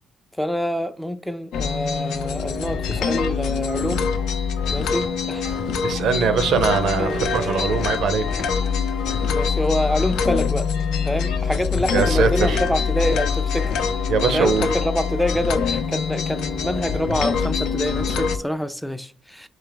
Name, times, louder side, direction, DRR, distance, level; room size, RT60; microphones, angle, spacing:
voice 1, 0.4-4.1 4.7-5.6 7.0-7.6 9.3-10.7 11.0-13.8 14.3-19.5, equal, ahead, 0.3 m, -26 dB
sound 1, 1.5-18.4, left 6 dB, 90° left, 0.6 m, -24 dB
voice 2, 5.8-8.2 11.9-12.6 14.1-14.7, right 5 dB, 75° right, 0.6 m, -21 dB
4.0 x 3.3 x 3.8 m
cardioid pair, 90°, 0 cm